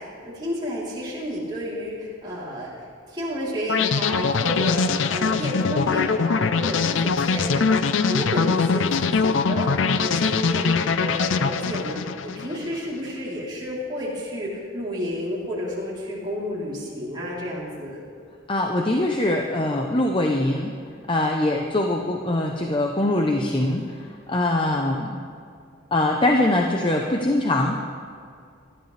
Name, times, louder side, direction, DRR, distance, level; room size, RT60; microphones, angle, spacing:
voice 1, 0.0-2.7 3.1-18.0, equal, 25° right, -7 dB, 3.4 m, -31 dB
sound 1, 3.7-12.7, left 5 dB, 75° left, 0.5 m, -22 dB
voice 2, 18.5-20.7 21.1-23.9 24.3-25.2 25.9-27.8, left 1 dB, 25° left, 2 dB, 0.7 m, -22 dB
18.5 x 13.0 x 3.3 m, 2.3 s
head